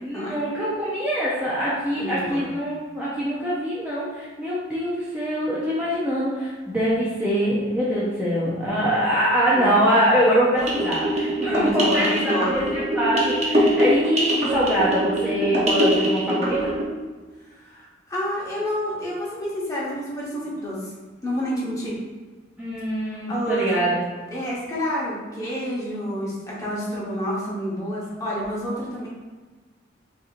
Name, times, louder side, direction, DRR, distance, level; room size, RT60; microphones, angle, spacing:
voice 1, 0.0-16.7 22.6-24.0, equal, 10° right, -9 dB, 0.6 m, -24 dB
voice 2, 1.9-2.5 9.5-9.8 11.5-12.5 17.5-20.9 21.2-21.9 23.3-23.7 24.3-29.1, equal, 15° left, -6 dB, 1.1 m, -29 dB
sound 1, 10.5-16.8, equal, 35° right, 0.8 m, -23 dB
6.6 x 2.8 x 2.5 m, 1.3 s
head